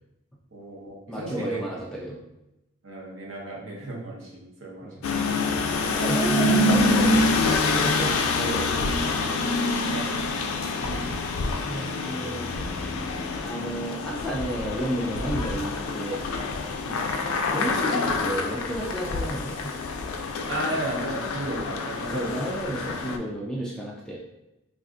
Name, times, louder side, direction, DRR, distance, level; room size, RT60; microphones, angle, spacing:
voice 1, 0.5-1.6 2.8-5.2 9.9-10.5 16.8-17.0 20.5-22.6, right 1 dB, 70° right, -4 dB, 0.8 m, -35 dB
voice 2, 1.1-2.2 4.8-5.1 5.7-9.3 10.8-11.2 11.6-12.7 13.4-16.3 17.4-19.7 22.1-24.2, equal, 5° left, -4 dB, 0.3 m, -32 dB
sound 1, 5.0-23.2, left 2 dB, 85° left, 0.3 m, -26 dB
3.6 x 2.5 x 2.4 m, 0.92 s
head